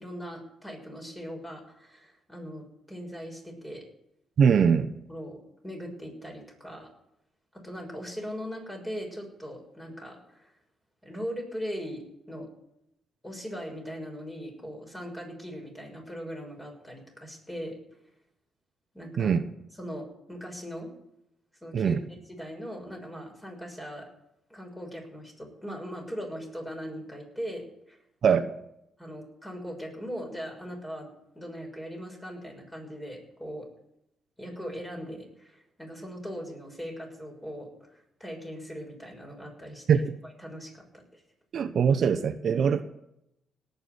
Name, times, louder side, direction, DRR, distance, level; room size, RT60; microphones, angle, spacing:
voice 1, 0.0-3.8 5.1-6.9 7.6-10.5 11.0-12.5 13.2-17.7 18.9-19.3 19.8-20.9 21.6-22.0 22.3-24.1 24.5-28.0 28.2-28.4 29.0-33.7 34.4-41.2, equal, 10° left, 6.4 m, -40 dB
voice 2, 4.4-4.9 19.2-19.4 21.7-22.0 28.2-28.5 39.9-40.0 41.5-42.8, right 7 dB, 55° right, 1.0 m, -22 dB
18.0 x 7.1 x 9.7 m
cardioid pair, 90°, 0 cm